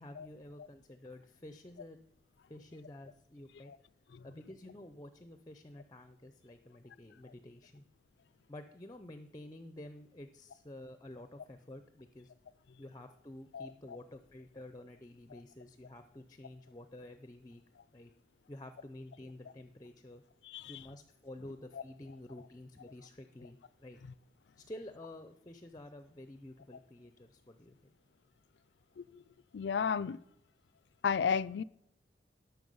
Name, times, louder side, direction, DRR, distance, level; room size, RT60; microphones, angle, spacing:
voice 1, 0.0-2.0 2.5-3.7 4.2-7.8 8.5-12.3 12.8-17.6 17.9-18.1 18.5-20.2 20.7-24.0 24.6-27.9, left 1 dB, 20° left, 0.5 m, -50 dB
voice 2, 13.5-14.0 15.3-15.4 20.4-20.8 21.7-21.8 29.0-29.2 29.5-30.2 31.0-31.6, left 6 dB, 80° left, 0.4 m, -34 dB
12.5 x 5.9 x 5.4 m
head